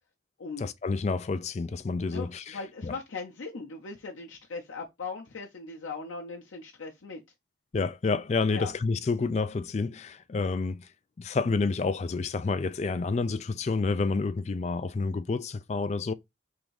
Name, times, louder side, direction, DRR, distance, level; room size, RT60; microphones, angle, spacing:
voice 1, 0.6-2.6 2.8-2.9 7.7-10.9 11.2-16.1, left 4 dB, 35° left, 0.3 m, -29 dB
voice 2, 2.1-7.2 8.5-8.7, left 4 dB, 90° left, 0.7 m, -39 dB
3.6 x 2.6 x 4.6 m
head